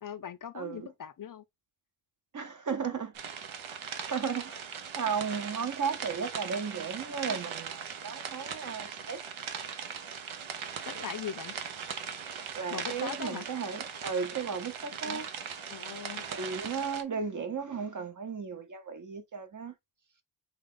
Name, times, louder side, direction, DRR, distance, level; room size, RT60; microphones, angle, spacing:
voice 1, 0.0-1.4 10.9-11.5 12.7-13.4 15.0-15.2 15.7-16.3, left 8 dB, 45° left, 0.5 m, -40 dB
voice 2, 0.5-0.9 2.3-3.1 3.7-4.7 5.0-9.2 12.6-15.3 16.3-19.7, right 6 dB, 40° right, 0.9 m, -35 dB
sound 1, 3.1-17.0, right 7 dB, 80° right, 0.9 m, -39 dB
4.3 x 3.3 x 3.7 m
wide cardioid pair, 125°, 47 cm